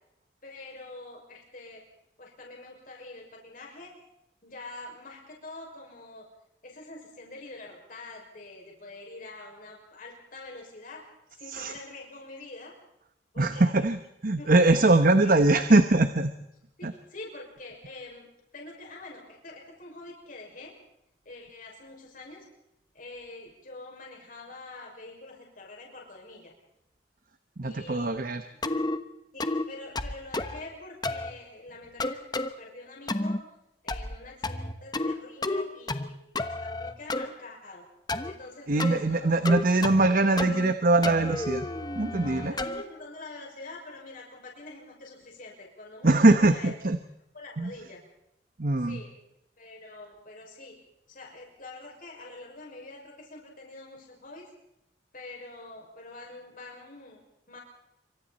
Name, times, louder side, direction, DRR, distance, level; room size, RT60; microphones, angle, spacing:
voice 1, 0.4-1.8 2.2-3.9 4.4-6.2 6.6-11.0 11.4-12.7 13.3-13.7 14.4-14.5 15.2-15.5 16.8-18.3 18.5-20.7 21.2-22.5 22.9-26.5 27.6-28.6 29.3-33.4 33.8-37.9 38.3-39.3 40.0-40.4 42.1-46.7 47.3-48.0 48.8-49.1 49.6-50.8 51.1-54.5 55.1-57.6, left 2 dB, 50° left, -1 dB, 6.2 m, -45 dB
voice 2, 13.4-16.3 16.8-16.9 27.6-28.4 38.7-41.7 41.9-42.5 46.0-47.0 47.6-47.7 48.6-49.0, right 2 dB, 50° right, 9 dB, 1.1 m, -22 dB
sound 1, 28.6-29.0 29.4-29.7 30.0-30.6 31.0-31.3 32.0-32.5 33.1-33.4 33.9-34.2 34.4-35.2 35.4-36.1 36.4-37.3 38.1-38.3 38.8-39.0 39.5-40.1 40.4-40.7 41.0-42.8, left 2 dB, 25° left, 1.1 m, -31 dB
27.0 x 25.0 x 4.3 m, 0.82 s
head